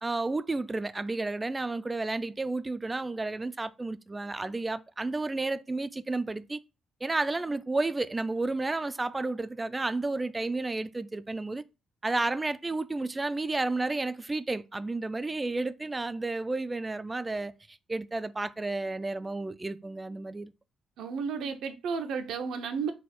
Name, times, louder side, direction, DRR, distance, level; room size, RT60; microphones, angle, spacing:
voice 1, 0.0-6.6 7.0-11.6 12.0-20.5, right 2 dB, 20° right, 0.3 m, -32 dB
voice 2, 21.0-22.9, right 5 dB, 75° right, 0.6 m, -32 dB
4.2 x 2.3 x 4.3 m
cardioid pair, 90°, 0 cm